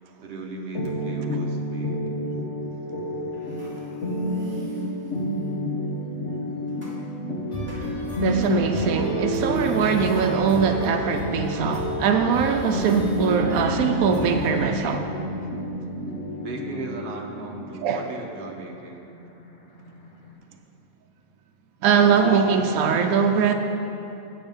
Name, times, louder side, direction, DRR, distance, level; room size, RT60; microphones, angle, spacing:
voice 1, 0.2-2.0 16.3-19.1, right 3 dB, 50° right, 0 dB, 1.2 m, -36 dB
sound 1, 0.7-20.3, equal, 55° left, 1.4 m, -30 dB
sound 2, 3.3-5.6 6.3-7.0 7.6-8.6 9.3-11.4 11.7-11.8 12.2-14.3, equal, 10° right, 2.3 m, -46 dB
sound 3, 7.5-14.7, equal, 30° left, 1.6 m, -35 dB
voice 2, 8.2-15.1 17.8-18.0 21.8-23.5, right 6 dB, 85° right, 5 dB, 1.0 m, -21 dB
8.6 x 7.9 x 5.3 m, 2.8 s
omnidirectional pair, 1.5 m